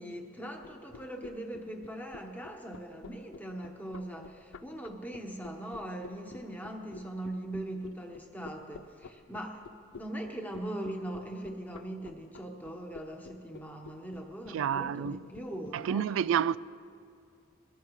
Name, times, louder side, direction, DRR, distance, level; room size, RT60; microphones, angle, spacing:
voice 1, 0.0-9.7 9.9-16.1, right 1 dB, 10° left, 1.2 m, -40 dB
sound 1, 0.6-15.7, left 5 dB, 70° left, 0.5 m, -49 dB
voice 2, 14.5-15.2 15.7-16.6, right 8 dB, 70° right, 0.3 m, -29 dB
23.0 x 16.0 x 3.2 m
head